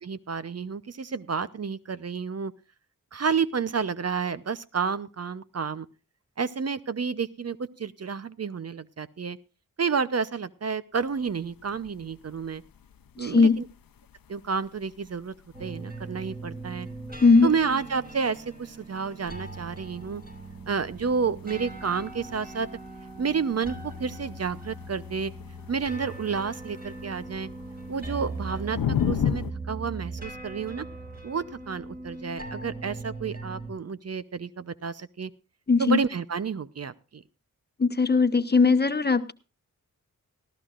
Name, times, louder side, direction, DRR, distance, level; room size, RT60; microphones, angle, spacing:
voice 1, 0.0-2.5 3.1-5.9 6.4-9.4 9.8-12.6 13.2-13.6 14.3-15.3 15.6-16.9 17.4-20.2 20.7-22.7 23.2-25.3 25.7-27.5 27.9-30.8 31.2-35.3 35.8-37.2, right 5 dB, 45° right, 14 dB, 0.8 m, -30 dB
sound 1, 10.9-29.5, left 9 dB, 85° left, 0.8 m, -38 dB
voice 2, 13.2-13.6 17.2-17.5 35.7-36.0 37.8-39.3, left 4 dB, 30° left, 11 dB, 1.1 m, -19 dB
sound 2, 15.5-33.7, right 2 dB, 25° right, 5.9 m, -40 dB
19.0 x 13.5 x 2.5 m, 0.32 s
cardioid pair, 45°, 34 cm